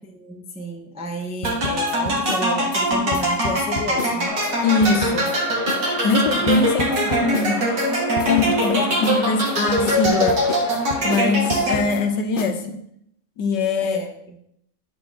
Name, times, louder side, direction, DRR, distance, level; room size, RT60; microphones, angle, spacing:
voice 1, 0.0-4.4 6.7-7.5 8.7-8.9 13.8-14.4, left 1 dB, 5° right, 2 dB, 0.7 m, -31 dB
sound 1, 1.4-4.5 4.8-5.4 5.7-5.8 6.1-7.9 8.2-8.7 9.0-12.0 12.4-12.6, left 5 dB, 85° left, 0.4 m, -31 dB
sound 2, 1.4-12.1, right 1 dB, 50° right, 2.1 m, -23 dB
sound 3, 4.2-12.2, left 3 dB, 35° left, 0.8 m, -33 dB
voice 2, 4.6-5.3 6.0-7.7 8.2-10.4 11.0-12.8 13.4-14.0, left 4 dB, 65° left, 6 dB, 1.4 m, -22 dB
11.0 x 4.7 x 6.3 m, 0.73 s
omnidirectional pair, 2.1 m